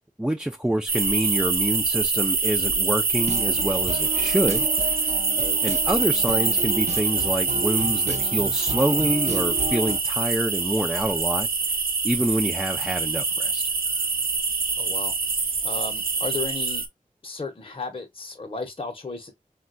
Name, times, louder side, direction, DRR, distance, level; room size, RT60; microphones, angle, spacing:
voice 1, 0.2-5.1 5.6-11.5 12.0-13.6, right 1 dB, 5° right, 0.4 m, -27 dB
sound 1, 0.9-16.9, right 4 dB, 85° right, 0.7 m, -25 dB
sound 2, 3.2-10.0, right 2 dB, 50° right, 0.6 m, -33 dB
voice 2, 14.8-15.1 15.6-16.9 17.2-19.3, left 3 dB, 40° left, 0.8 m, -34 dB
3.7 x 2.2 x 2.5 m
wide cardioid pair, 60°, 15 cm